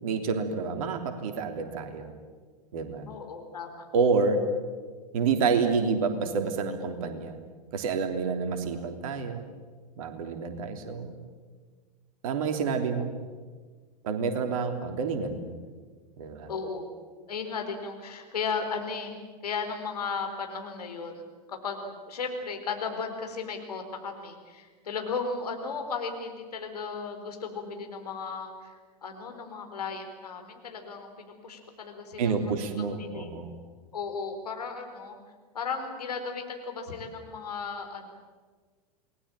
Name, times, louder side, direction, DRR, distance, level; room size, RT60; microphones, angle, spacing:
voice 1, 0.0-2.1 2.7-3.0 3.9-4.4 5.1-7.3 7.7-9.4 10.0-11.2 12.2-13.1 14.0-15.5 16.2-16.5 32.2-33.5, right 5 dB, 55° right, 6 dB, 3.3 m, -28 dB
voice 2, 3.1-3.8 16.5-16.9 17.3-32.5 32.8-33.3 33.9-35.2 35.5-38.1, left 5 dB, 70° left, 5 dB, 4.5 m, -35 dB
28.0 x 20.5 x 8.9 m, 1.5 s
figure-of-eight pair, 90°, 21 cm